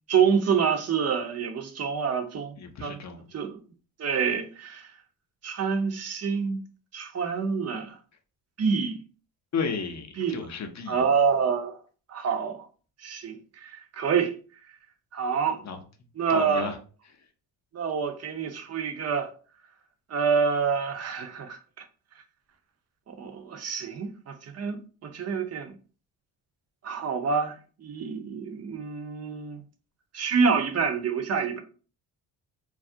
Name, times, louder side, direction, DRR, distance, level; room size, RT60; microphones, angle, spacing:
voice 1, 0.1-2.5 2.8-3.0 3.3-3.6 4.0-4.9 5.4-6.6 6.9-8.0 8.6-9.0 10.2-10.4 10.9-11.8 12.1-12.7 13.0-14.3 15.1-15.6 16.2-16.7 17.7-19.3 20.1-21.9 23.1-25.7 26.8-29.6 30.1-31.6, right 6 dB, 35° right, 0.5 m, -27 dB
voice 2, 2.6-3.3 9.5-11.0 15.6-15.8 16.3-16.8, left 5 dB, 35° left, 0.6 m, -33 dB
2.3 x 2.0 x 2.6 m
supercardioid pair, 55°, 49 cm